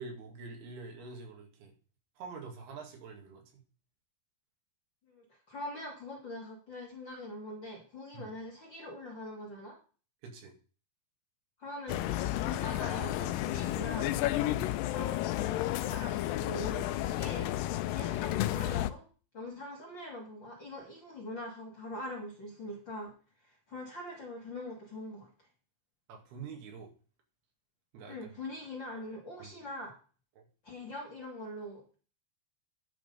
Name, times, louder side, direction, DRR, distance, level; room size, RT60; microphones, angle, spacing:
voice 1, 0.0-1.7 2.2-3.6 8.1-8.3 10.2-10.5 14.5-14.8 26.1-26.9 27.9-28.3 29.4-29.5 30.4-30.5, right 4 dB, 80° right, 2 dB, 4.2 m, -46 dB
voice 2, 5.1-9.8 11.6-14.1 14.9-17.5 17.9-19.1 19.3-23.1 23.4-25.3 28.1-29.9 30.6-31.8, left 1 dB, 40° left, -1 dB, 1.9 m, -43 dB
sound 1, 11.9-18.9, left 14 dB, 85° left, 2.0 m, -32 dB
10.5 x 6.3 x 5.3 m, 0.38 s
omnidirectional pair, 4.5 m